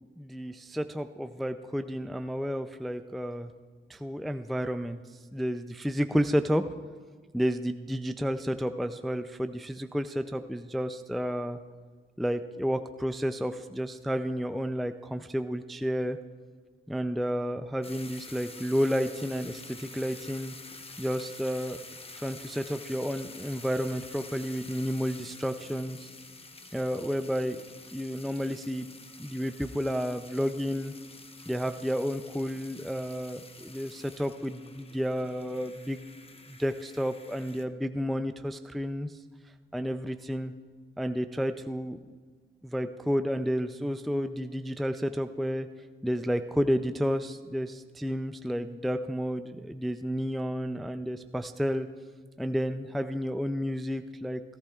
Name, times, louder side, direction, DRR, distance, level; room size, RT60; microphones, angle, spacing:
voice 1, 0.2-3.5 3.9-6.7 7.3-11.6 12.2-16.2 16.9-20.5 21.0-21.8 22.2-26.1 26.7-27.6 27.9-28.9 29.2-30.9 31.5-36.1 36.5-39.2 39.7-40.5 41.0-42.0 42.6-51.9 52.4-54.4, equal, ahead, 8 dB, 0.4 m, -31 dB
sound 1, 17.8-37.7, left 3 dB, 30° left, 0.9 m, -48 dB
17.5 x 14.5 x 2.4 m, 1.5 s
wide cardioid pair, 100°, 21 cm